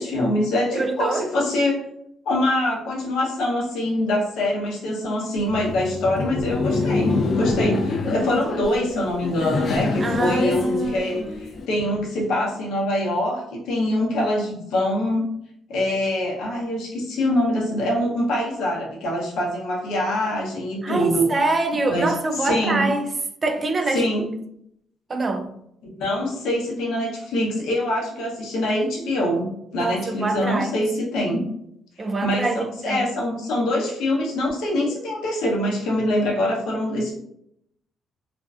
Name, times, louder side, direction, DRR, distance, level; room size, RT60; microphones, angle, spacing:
voice 1, 0.0-1.8 2.3-15.3 15.7-21.3 21.9-22.1 22.4-22.9 23.9-24.4 25.9-31.5 32.2-37.1, left 1 dB, 85° left, 0.7 m, -24 dB
voice 2, 0.7-1.3 10.0-11.4 20.8-23.1 23.4-24.0 25.1-25.5 29.7-30.7 32.0-33.1, right 3 dB, 35° right, 0.3 m, -25 dB
Laughter, 5.4-11.7, left 3 dB, 55° left, 0.3 m, -26 dB
2.5 x 2.2 x 2.3 m
cardioid pair, 90°, 0 cm